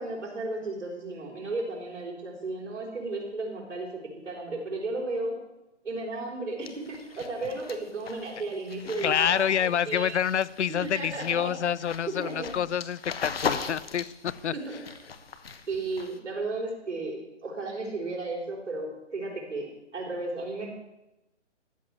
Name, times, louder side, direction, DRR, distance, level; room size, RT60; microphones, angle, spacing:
voice 1, 0.0-3.9 4.2-5.4 5.8-10.2 10.8-11.5 12.2-12.5 14.5-14.8 15.7-20.7, right 2 dB, 90° right, -2 dB, 4.6 m, -34 dB
sound 1, 6.6-16.2, left 6 dB, 55° left, 1.3 m, -39 dB
voice 2, 9.0-14.5, left 9 dB, 75° left, 21 dB, 0.6 m, -27 dB
13.5 x 4.9 x 8.3 m, 0.97 s
hypercardioid pair, 170°, 35 cm